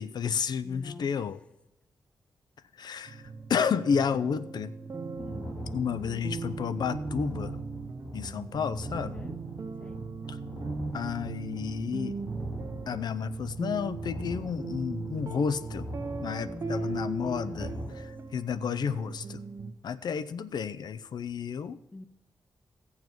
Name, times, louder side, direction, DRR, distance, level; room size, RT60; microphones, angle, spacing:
voice 1, 0.0-1.4 2.8-3.2 3.5-4.7 5.7-7.6 8.1-9.1 10.3-10.4 10.9-12.2 12.9-15.9 16.2-19.4 19.8-21.8, left 7 dB, 70° left, 15 dB, 0.6 m, -31 dB
voice 2, 0.6-1.1 5.2-5.5 8.9-9.4 9.8-10.1 16.4-17.7 21.9-22.1, left 2 dB, 15° left, 14 dB, 0.5 m, -45 dB
sound 1, 3.1-19.7, right 4 dB, 45° right, 1.2 m, -38 dB
sound 2, 5.2-17.9, left 1 dB, 50° left, 4.5 m, -43 dB
16.0 x 7.3 x 6.1 m, 0.88 s
wide cardioid pair, 115°, 7 cm